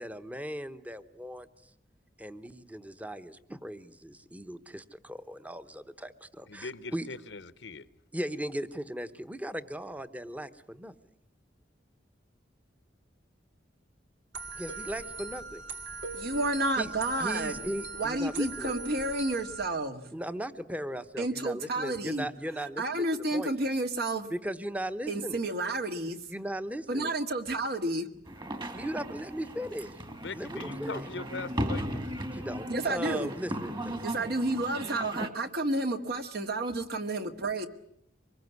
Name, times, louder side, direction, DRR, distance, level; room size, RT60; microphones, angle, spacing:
voice 1, 0.0-1.5 2.2-7.1 8.1-10.9 14.6-15.6 16.8-16.9 17.2-18.7 20.1-23.0 23.3-23.5 24.3-25.4 26.3-27.1 28.7-29.9 30.3-31.1 32.3-34.0 35.2-35.3, equal, 10° right, 1.1 m, -37 dB
voice 2, 6.5-7.9 30.1-32.1, left 3 dB, 75° left, 1.0 m, -41 dB
sound 1, 14.3-19.7, right 4 dB, 90° right, 2.9 m, -40 dB
voice 3, 16.1-17.6 18.0-20.0 21.2-22.3 22.8-24.3 25.1-26.2 26.9-28.0 32.7-33.3 34.0-37.7, right 2 dB, 60° right, 2.1 m, -30 dB
sound 2, 28.3-35.3, equal, 25° right, 2.2 m, -36 dB
24.5 x 21.5 x 9.6 m
head